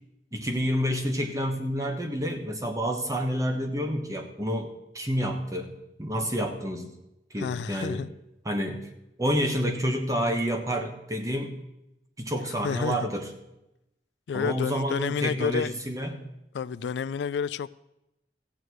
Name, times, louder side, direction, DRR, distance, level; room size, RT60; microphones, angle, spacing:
voice 1, 0.3-6.9 7.3-8.1 8.4-8.9 9.2-11.6 12.2-13.3 14.3-16.2, equal, 20° right, 1.3 m, -29 dB
voice 2, 7.4-8.1 12.6-13.0 14.3-15.7 16.5-17.7, left 6 dB, 75° left, 0.3 m, -29 dB
15.0 x 8.3 x 4.7 m
head